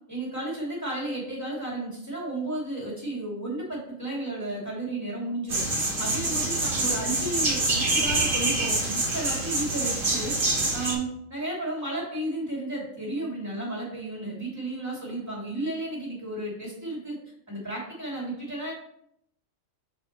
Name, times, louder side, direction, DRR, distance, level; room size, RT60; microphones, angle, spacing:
voice 1, 0.1-5.6 6.0-10.3 10.7-17.2 17.5-18.7, right 2 dB, 10° right, -5 dB, 2.5 m, -33 dB
sound 1, 5.5-10.9, right 2 dB, 40° right, 1.6 m, -26 dB
6.3 x 6.3 x 3.0 m, 0.73 s
omnidirectional pair, 1.4 m